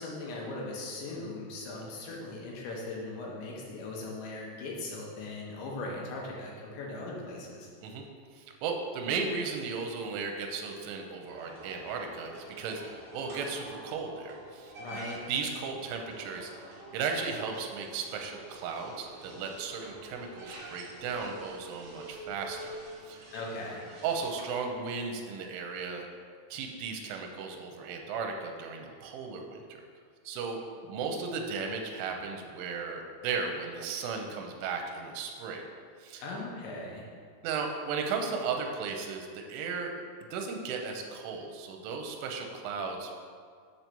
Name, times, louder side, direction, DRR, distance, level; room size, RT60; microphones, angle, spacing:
voice 1, 0.0-7.7 14.8-15.2 23.3-23.8 36.2-37.1, left 2 dB, 70° left, -3 dB, 3.3 m, -39 dB
voice 2, 8.3-14.7 15.3-22.8 23.0-23.3 24.0-26.1 26.5-29.8 30.2-35.7 36.0-36.2 37.4-39.9 40.3-43.1, right 5 dB, 85° right, 2 dB, 3.2 m, -35 dB
sound 1, 11.3-24.7, right 2 dB, 55° right, 2.9 m, -47 dB
7.5 x 4.6 x 6.8 m, 2.1 s
omnidirectional pair, 5.7 m